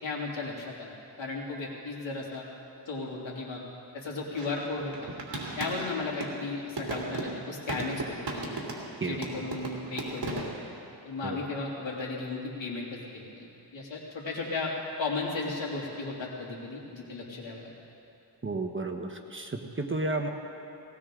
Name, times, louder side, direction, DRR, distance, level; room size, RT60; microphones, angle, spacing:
voice 1, 0.0-0.9 1.2-2.4 2.9-3.6 3.9-4.9 5.6-8.6 9.0-10.5 11.0-13.5 13.7-14.7 15.0-17.7, left 3 dB, 80° left, -3 dB, 2.9 m, -35 dB
sound 1, 4.4-6.4 6.8-9.0 9.2-10.6, right 2 dB, 60° right, 2.9 m, -36 dB
voice 2, 18.4-20.3, right 2 dB, 25° right, 4 dB, 1.1 m, -32 dB
18.5 x 18.5 x 3.8 m, 2.8 s
wide cardioid pair, 95°, 45 cm